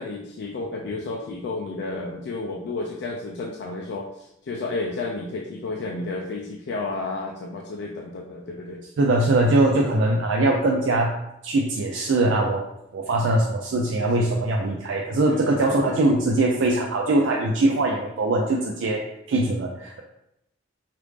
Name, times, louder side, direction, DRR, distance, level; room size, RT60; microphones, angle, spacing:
voice 1, 0.0-8.8 14.0-14.5 15.3-16.0, left 3 dB, 60° left, 1 dB, 0.3 m, -32 dB
voice 2, 9.0-11.1 11.4-12.6 12.9-19.0 19.3-20.0, right 2 dB, 75° right, -1 dB, 0.4 m, -21 dB
3.3 x 2.5 x 3.2 m, 0.82 s
head